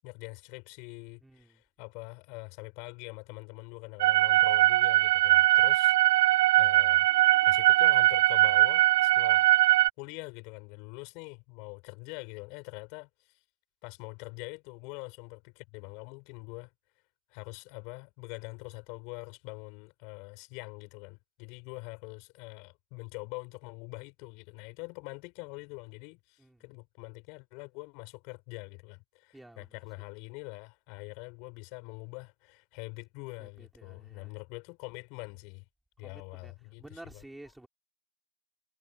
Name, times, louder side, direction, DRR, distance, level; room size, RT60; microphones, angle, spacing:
voice 1, 0.0-5.9 6.6-7.1 7.5-9.5 10.0-13.4 13.8-16.7 17.3-35.6 36.0-37.2, left 33 dB, 30° left, 7.6 m, -44 dB
voice 2, 1.2-1.6 26.4-26.6 29.3-29.7 33.4-34.4 36.0-36.5 36.8-37.7, right 1 dB, 5° right, 4.6 m, -51 dB
sound 1, 4.0-9.9, right 16 dB, 40° right, 0.3 m, -21 dB
figure-of-eight pair, 125°, 0 cm